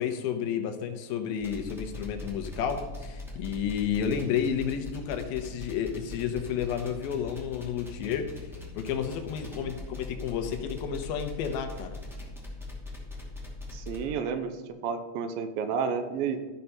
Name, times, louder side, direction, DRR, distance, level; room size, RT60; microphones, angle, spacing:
voice 1, 0.0-8.3 8.8-12.0, left 8 dB, 80° left, 6 dB, 2.7 m, -31 dB
sound 1, 1.4-14.0, left 2 dB, ahead, 1.4 m, -41 dB
voice 2, 13.7-14.5 14.8-16.4, right 6 dB, 80° right, 8 dB, 2.4 m, -31 dB
13.5 x 5.8 x 5.5 m, 1.2 s
omnidirectional pair, 4.3 m